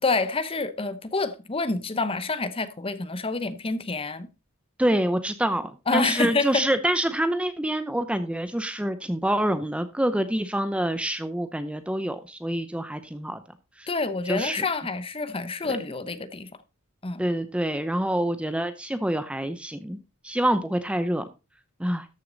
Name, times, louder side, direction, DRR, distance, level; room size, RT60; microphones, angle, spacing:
voice 1, 0.0-4.3 5.9-6.6 13.9-16.5 17.0-17.2, left 3 dB, 25° left, 0.8 m, -27 dB
voice 2, 4.8-13.4 13.8-13.9 14.3-14.6 15.6-15.8 17.2-20.0 20.2-21.2 21.8-22.1, right 1 dB, 5° right, 0.6 m, -26 dB
13.5 x 6.4 x 3.9 m
head